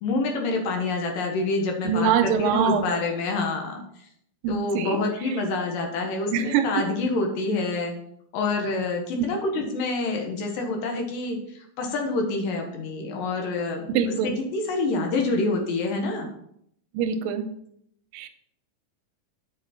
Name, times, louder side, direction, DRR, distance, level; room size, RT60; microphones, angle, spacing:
voice 1, 0.0-3.8 4.5-7.9 8.3-11.4 11.8-16.3, left 3 dB, 75° left, 2 dB, 3.0 m, -27 dB
voice 2, 1.8-2.9 4.4-5.0 6.3-6.8 9.6-9.7 13.9-14.4 16.9-17.5 18.1-18.3, right 7 dB, 90° right, 8 dB, 2.4 m, -24 dB
8.2 x 5.6 x 4.3 m, 0.71 s
omnidirectional pair, 4.0 m